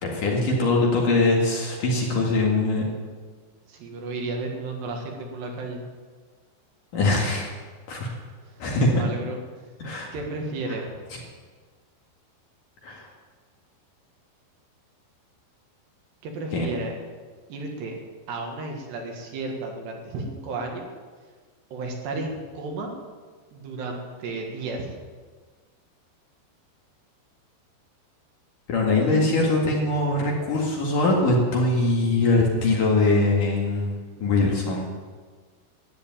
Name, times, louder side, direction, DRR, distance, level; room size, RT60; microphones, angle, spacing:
voice 1, 0.0-2.8 6.9-7.5 7.9-8.1 8.6-9.0 9.8-10.1 12.8-13.1 16.5-16.7 28.7-33.9 34.2-34.9, left 2 dB, 55° left, -2 dB, 3.1 m, -22 dB
voice 2, 3.7-5.8 8.5-9.4 10.1-10.9 16.2-16.9 17.5-18.0 18.3-20.9 21.7-22.9 23.5-25.0 34.2-34.4, right 3 dB, 70° right, 1 dB, 3.9 m, -33 dB
13.5 x 10.0 x 8.9 m, 1.5 s
omnidirectional pair, 5.2 m